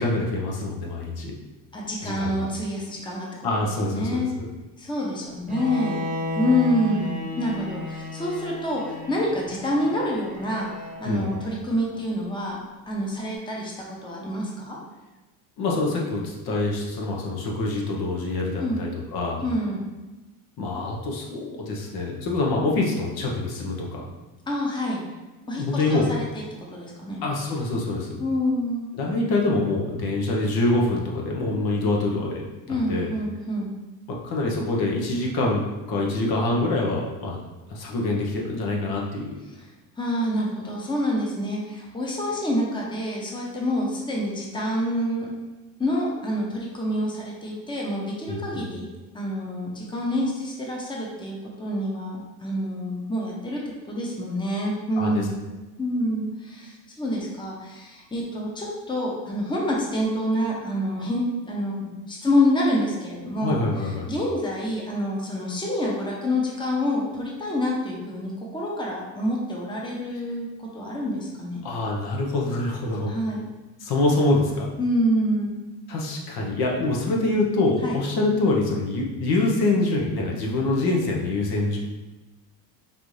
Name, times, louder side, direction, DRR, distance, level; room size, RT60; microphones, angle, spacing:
voice 1, 0.0-1.4 2.0-2.5 3.4-4.5 11.0-11.3 15.6-19.4 20.6-24.0 25.6-26.1 27.2-28.2 29.0-33.1 34.1-37.4 37.7-39.4 48.3-48.7 55.0-55.3 63.4-64.1 71.6-73.1 73.8-74.7 75.9-81.8, left 2 dB, 65° left, -1 dB, 1.0 m, -25 dB
voice 2, 1.7-3.3 3.8-4.3 4.8-6.0 6.3-7.1 7.4-10.7 11.0-12.6 12.9-13.7 14.0-14.8 18.6-18.8 19.4-19.8 24.5-25.0 25.5-27.2 28.2-28.9 32.7-33.7 39.5-39.7 40.0-45.3 45.8-48.9 49.1-53.6 53.9-55.3 55.8-61.8 62.1-71.6 73.1-73.4 74.8-75.5 77.8-78.0, left 1 dB, 10° left, -2 dB, 0.8 m, -27 dB
Bowed string instrument, 5.5-11.5, left 1 dB, 20° right, 0.9 m, -33 dB
5.2 x 2.7 x 3.2 m, 1.1 s
cardioid pair, 105°, 41 cm